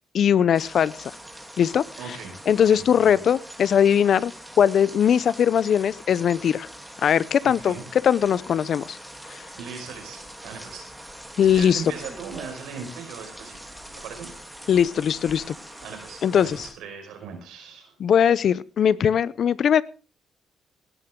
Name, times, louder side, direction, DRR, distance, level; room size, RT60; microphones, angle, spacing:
voice 1, 0.1-1.1 1.6-1.8 2.5-4.3 4.6-6.7 7.0-7.8 8.0-9.0 9.3-9.4 11.4-11.8 14.7-15.5 16.2-16.7 18.0-19.8, left 8 dB, 60° left, 20 dB, 0.6 m, -20 dB
sound 1, 0.5-16.7, right 1 dB, 5° right, 3.0 m, -43 dB
voice 2, 2.0-2.4 2.7-2.8 3.1-3.2 7.4-7.8 9.6-10.9 11.5-13.6 13.9-14.3 15.8-17.9, right 6 dB, 85° right, 4 dB, 5.5 m, -38 dB
19.0 x 12.0 x 3.8 m, 0.35 s
cardioid pair, 90°, 0 cm